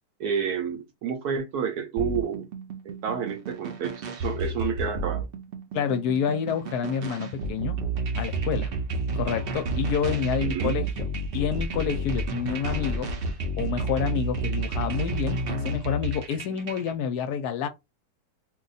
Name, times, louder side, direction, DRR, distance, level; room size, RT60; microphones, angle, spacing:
voice 1, 0.2-2.5 2.8-5.3 10.4-10.8, right 7 dB, 70° right, 1.0 m, -30 dB
sound 1, 2.0-16.9, right 2 dB, 90° right, 0.5 m, -31 dB
voice 2, 5.7-7.8 8.2-8.7 9.1-13.1 13.6-17.7, left 7 dB, 75° left, 1.0 m, -28 dB
2.7 x 2.2 x 3.8 m
omnidirectional pair, 1.8 m